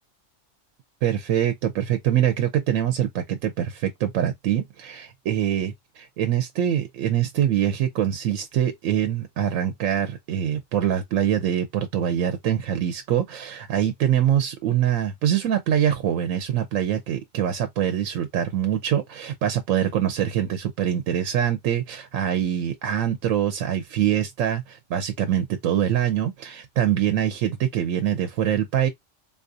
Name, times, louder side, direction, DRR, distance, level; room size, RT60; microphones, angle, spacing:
voice 1, 1.0-28.9, right 10 dB, 90° right, 1.0 m, -24 dB
3.8 x 2.3 x 2.6 m
omnidirectional pair, 1.3 m